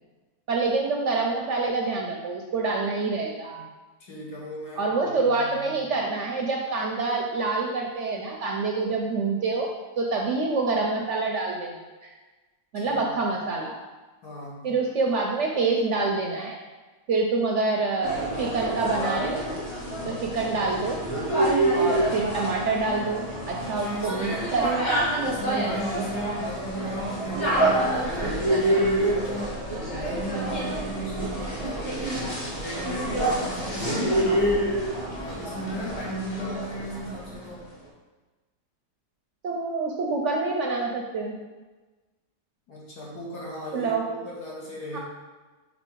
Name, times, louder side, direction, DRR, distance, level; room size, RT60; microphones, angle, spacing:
voice 1, 0.5-3.6 4.8-9.7 10.0-11.7 12.0-12.1 12.7-13.7 14.6-16.6 17.1-19.4 20.0-21.0 21.7-24.9 39.4-41.3 43.7-44.0 44.9-45.0, right 3 dB, 65° right, 0 dB, 0.7 m, -26 dB
voice 2, 4.0-5.8 12.8-13.2 14.2-14.7 23.6-24.9 25.2-29.6 29.9-34.8 35.1-37.7 42.7-45.0, right 1 dB, 80° left, -5 dB, 2.1 m, -36 dB
sound 1, 18.0-37.3, right 1 dB, 40° left, 1.8 m, -27 dB
5.3 x 4.1 x 4.5 m, 1.2 s
omnidirectional pair, 1.7 m